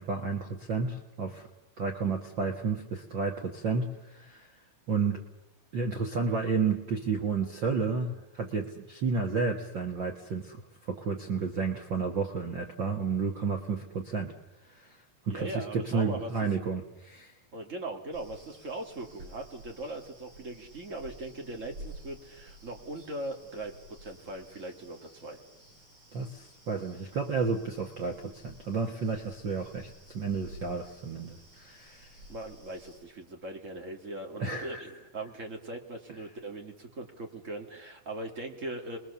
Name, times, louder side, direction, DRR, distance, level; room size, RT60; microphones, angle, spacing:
voice 1, 0.0-1.5 1.8-4.5 4.9-5.2 5.7-14.3 14.7-17.3 26.1-32.1 34.4-34.8, right 4 dB, 80° right, 3 dB, 1.0 m, -31 dB
voice 2, 15.3-16.3 17.5-23.7 24.0-25.4 32.3-39.0, right 2 dB, 25° right, 2 dB, 1.9 m, -40 dB
sound 1, 18.1-33.0, right 1 dB, 40° right, 6.4 m, -52 dB
30.0 x 21.5 x 7.0 m, 0.95 s
omnidirectional pair, 4.4 m